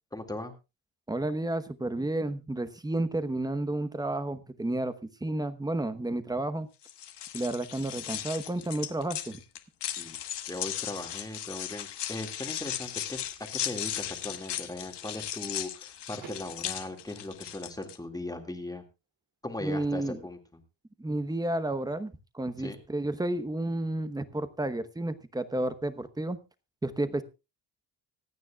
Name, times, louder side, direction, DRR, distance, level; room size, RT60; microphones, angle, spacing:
voice 1, 0.1-0.5 9.9-10.2 10.4-13.2 13.6-18.8 19.4-20.6 22.6-22.8, left 2 dB, 10° left, 5 dB, 2.1 m, -38 dB
voice 2, 1.1-6.7 7.3-9.4 19.6-20.2 21.0-26.4 26.8-27.2, right 1 dB, 10° right, 12 dB, 1.0 m, -31 dB
sound 1, 6.8-18.0, left 11 dB, 65° left, 1.4 m, -37 dB
Car / Door, 16.2-18.1, right 7 dB, 85° right, 2.8 m, -52 dB
25.5 x 9.3 x 2.3 m, 0.27 s
cardioid pair, 145°, 45 cm